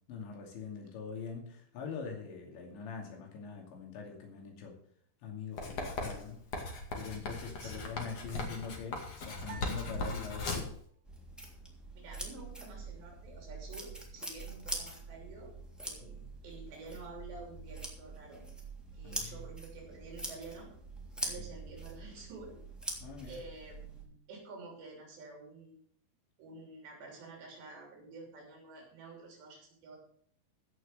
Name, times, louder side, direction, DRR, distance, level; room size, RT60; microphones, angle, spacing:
voice 1, 0.1-4.8 5.2-6.4 7.0-10.7 16.0-16.1 19.0-19.4 21.4-21.5 23.0-23.4, left 5 dB, 75° left, 1 dB, 4.9 m, -43 dB
Writing, 5.6-10.8, left 3 dB, 45° left, 2.7 m, -38 dB
sound 1, 9.4-10.9, right 6 dB, 85° right, 4.4 m, -53 dB
sound 2, 11.0-24.0, right 2 dB, ahead, 1.8 m, -44 dB
voice 2, 11.9-15.5 15.8-18.5 18.9-20.7 21.2-22.6 23.3-25.9 26.4-30.0, right 3 dB, 70° right, -1 dB, 5.5 m, -50 dB
15.5 x 6.6 x 6.7 m, 0.62 s
omnidirectional pair, 5.2 m